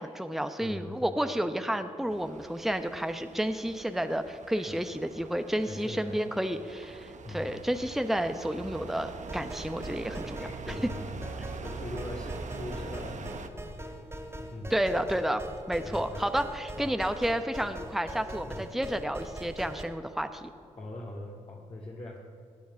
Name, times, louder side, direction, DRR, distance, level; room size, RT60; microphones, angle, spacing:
voice 1, 0.0-10.5 14.7-15.4 15.7-20.5, equal, ahead, 8 dB, 1.0 m, -31 dB
voice 2, 0.6-1.1 4.5-4.8 5.7-6.2 7.2-7.5 10.3-13.6 14.5-14.7 15.8-16.3 16.8-16.9 18.5-18.6 20.8-22.2, left 1 dB, 45° left, -4 dB, 2.3 m, -41 dB
sound 1, 2.1-13.5, right 4 dB, 60° right, 1.1 m, -44 dB
sound 2, 9.3-19.8, right 1 dB, 20° right, 2.8 m, -42 dB
17.0 x 9.3 x 6.3 m, 2.6 s
supercardioid pair, 45°, 14 cm